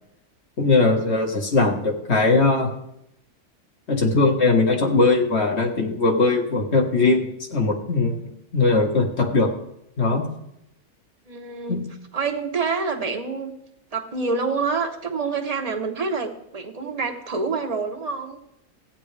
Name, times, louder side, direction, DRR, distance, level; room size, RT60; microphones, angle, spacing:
voice 1, 0.6-2.7 3.9-9.5 10.0-10.3 11.7-11.8, left 3 dB, 55° left, 2 dB, 1.7 m, -20 dB
voice 2, 11.3-11.9 12.1-13.5 13.9-18.4, right 4 dB, 30° right, 4 dB, 1.0 m, -27 dB
14.5 x 9.1 x 3.3 m, 0.79 s
omnidirectional pair, 1.4 m